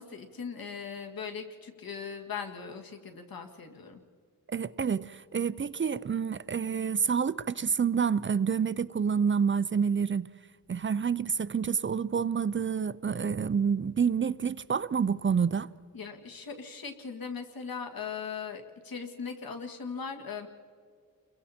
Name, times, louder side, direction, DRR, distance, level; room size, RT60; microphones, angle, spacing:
voice 1, 0.0-4.0 15.9-20.5, left 6 dB, 90° left, 2.0 m, -39 dB
voice 2, 4.5-10.3 10.7-15.7, right 6 dB, 35° right, 0.4 m, -28 dB
29.5 x 22.5 x 4.3 m
wide cardioid pair, 125°, 34 cm